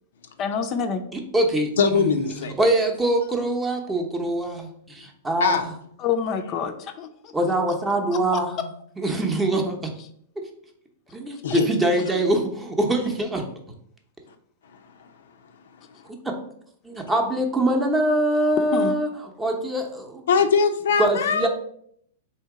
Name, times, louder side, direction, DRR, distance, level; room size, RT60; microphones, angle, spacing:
voice 1, 0.4-1.0 6.0-7.3 11.5-11.6 18.6-18.9, left 6 dB, 35° left, 7 dB, 0.5 m, -27 dB
voice 2, 1.1-5.7 7.3-8.7 9.0-9.9 11.1-13.4 16.8-19.1 19.4-20.2 21.0-21.5, right 1 dB, 10° right, 2 dB, 0.7 m, -24 dB
voice 3, 1.8-2.5 5.4-5.6 11.4-11.7 14.7-15.1 20.3-21.5, left 5 dB, 85° left, 7 dB, 0.5 m, -21 dB
3.6 x 2.8 x 4.7 m, 0.67 s
hypercardioid pair, 140°, 0 cm